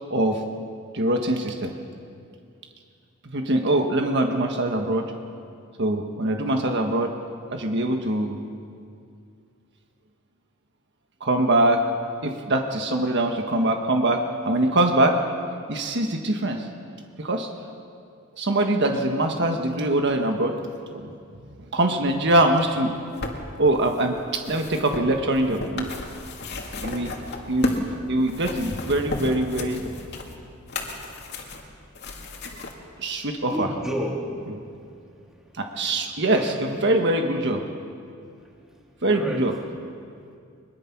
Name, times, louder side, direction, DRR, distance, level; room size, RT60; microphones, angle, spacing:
voice 1, 0.1-0.4 0.9-1.7 3.3-5.1 5.8-7.1 7.5-8.4 11.2-11.8 12.2-15.2 15.7-16.7 17.2-17.5 18.4-20.5 20.9-21.1 21.7-22.9 23.6-25.9 26.8-27.1 27.5-27.8 28.1-29.8 33.0-33.7 35.5-37.6 39.0-39.5, right 1 dB, 55° right, 3 dB, 1.5 m, -23 dB
sound 1, 22.7-27.9 28.2-32.7 33.5-33.6, left 2 dB, 55° left, 2.4 m, -33 dB
voice 2, 33.5-34.3 36.3-36.9 38.6-38.7 39.0-39.5 40.2-40.4, equal, 5° right, -2 dB, 3.0 m, -32 dB
22.0 x 22.0 x 6.1 m, 2.4 s
head